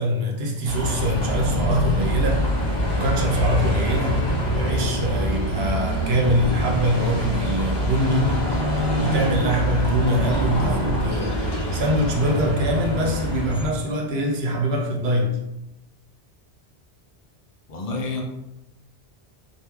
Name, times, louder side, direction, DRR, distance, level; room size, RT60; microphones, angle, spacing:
voice 1, 0.0-2.5 2.9-8.4 9.0-15.4, equal, 70° right, 0 dB, 0.9 m, -24 dB
Bus, 0.6-13.7, right 1 dB, 25° left, 0.8 m, -24 dB
voice 2, 17.7-18.2, left 3 dB, 50° left, 1 dB, 0.4 m, -28 dB
3.0 x 2.5 x 3.4 m, 0.90 s
omnidirectional pair, 1.1 m